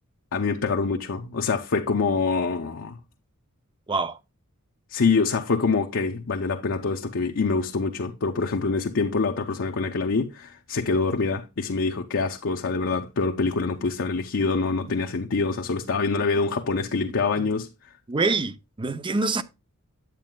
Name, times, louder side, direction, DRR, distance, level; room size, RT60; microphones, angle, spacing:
voice 1, 0.3-3.0 4.9-17.7, left 4 dB, 60° left, 0.7 m, -25 dB
voice 2, 3.9-4.2 17.0-17.5 18.1-19.4, right 3 dB, 20° right, 0.5 m, -26 dB
9.0 x 8.5 x 2.2 m
head